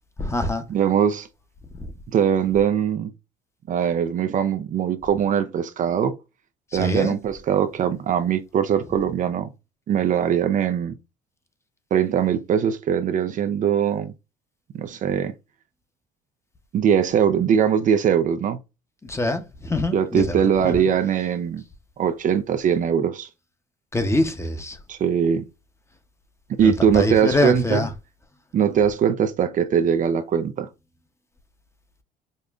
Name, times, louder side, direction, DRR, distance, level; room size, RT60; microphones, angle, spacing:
voice 1, 0.2-0.6 1.8-1.9 6.7-7.2 19.1-20.9 23.9-24.8 26.6-27.9, left 2 dB, 15° left, 0.8 m, -25 dB
voice 2, 0.7-1.3 2.1-3.1 3.7-6.2 6.7-9.5 9.9-11.0 11.9-14.1 14.7-15.3 16.7-18.6 19.9-21.6 22.0-23.3 24.9-25.5 26.5-27.9 28.5-30.7, right 8 dB, 45° right, 0.5 m, -21 dB
5.2 x 2.1 x 2.4 m
supercardioid pair, 75°, 18 cm